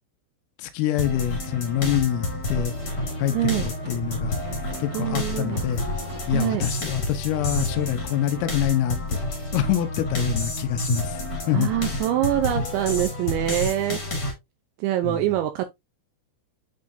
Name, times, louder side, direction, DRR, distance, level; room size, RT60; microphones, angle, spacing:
voice 1, 0.6-2.7 3.2-4.4 4.8-5.9 6.3-9.2 9.5-11.2 11.5-11.7 15.0-15.2, left 11 dB, 85° left, 3.6 m, -25 dB
sound 1, 1.0-14.3, left 2 dB, 45° left, 1.3 m, -29 dB
sound 2, 2.8-7.4 7.7-7.8 8.2-8.3, right 4 dB, 60° right, 2.6 m, -43 dB
voice 2, 3.3-3.6 4.9-5.6 6.3-6.6 11.5-14.0 14.8-15.7, right 13 dB, 85° right, 2.6 m, -24 dB
10.5 x 3.7 x 2.6 m
omnidirectional pair, 5.9 m